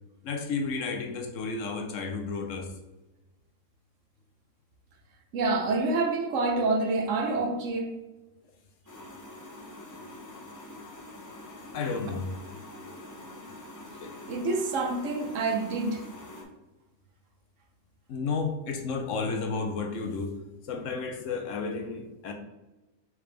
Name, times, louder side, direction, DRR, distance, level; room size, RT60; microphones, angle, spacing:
voice 1, 0.2-2.7 11.7-12.3 14.0-14.1 18.1-20.4 20.6-22.3, left 4 dB, 65° left, 0.8 m, -32 dB
voice 2, 5.3-8.0 14.3-16.0, right 3 dB, 65° right, 0.9 m, -27 dB
sound 1, 8.9-16.4, left 1 dB, 30° left, 0.3 m, -45 dB
4.7 x 3.4 x 3.3 m
omnidirectional pair, 1.6 m